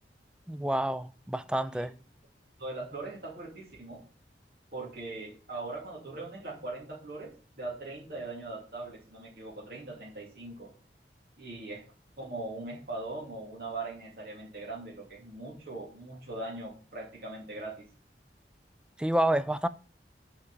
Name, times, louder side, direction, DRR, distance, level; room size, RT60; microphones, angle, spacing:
voice 1, 0.5-1.9 19.0-19.7, right 1 dB, 5° right, 0.3 m, -28 dB
voice 2, 2.6-4.0 4.7-10.7 11.4-11.8 12.2-17.9, right 2 dB, 55° right, 2.6 m, -40 dB
6.8 x 5.0 x 6.9 m
head